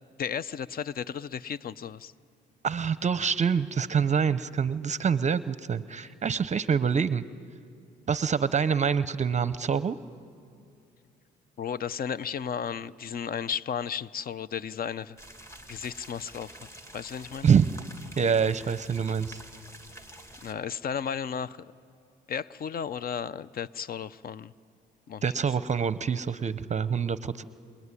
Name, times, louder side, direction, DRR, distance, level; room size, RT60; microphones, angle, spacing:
voice 1, 0.2-2.1 11.6-15.2 15.7-16.5 16.9-17.5 20.4-21.7 22.3-24.5 25.1-25.2, left 7 dB, 50° left, 18 dB, 0.6 m, -34 dB
voice 2, 2.6-7.2 8.1-10.0 17.4-17.7 18.2-19.4 25.2-27.4, right 6 dB, 35° right, 15 dB, 0.7 m, -26 dB
sound 1, 15.2-20.5, right 1 dB, 15° left, 2.2 m, -48 dB
27.5 x 20.5 x 9.8 m, 2.5 s
cardioid pair, 90°, 20 cm